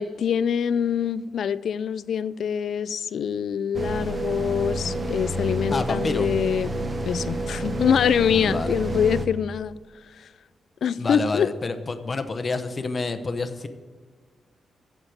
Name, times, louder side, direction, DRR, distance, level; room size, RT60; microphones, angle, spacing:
voice 1, 0.0-6.7 7.0-9.7 10.8-11.5, left 7 dB, 65° left, 0.3 m, -24 dB
sound 1, 3.7-9.3, right 1 dB, 25° right, 0.8 m, -29 dB
voice 2, 5.7-6.3 8.3-8.7 11.0-13.7, left 3 dB, 30° left, 0.7 m, -28 dB
7.9 x 7.3 x 8.6 m
wide cardioid pair, 150°, 0 cm